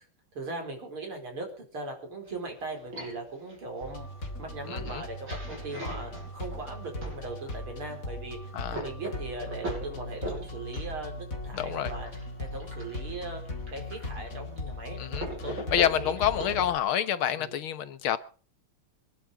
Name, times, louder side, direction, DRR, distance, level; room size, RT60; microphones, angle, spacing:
voice 1, 0.3-4.1 4.4-12.1 12.4-16.6 17.4-17.5, right 2 dB, 90° right, 5.5 m, -39 dB
sound 1, 2.3-7.6 8.2-16.6, right 1 dB, 65° right, 8.2 m, -42 dB
sound 2, 3.8-16.8, left 1 dB, 40° left, 3.4 m, -39 dB
voice 2, 4.7-5.0 8.5-8.8 11.5-11.9 15.0-15.3 15.7-18.2, left 10 dB, 80° left, 1.9 m, -28 dB
25.0 x 11.0 x 5.0 m
omnidirectional pair, 2.3 m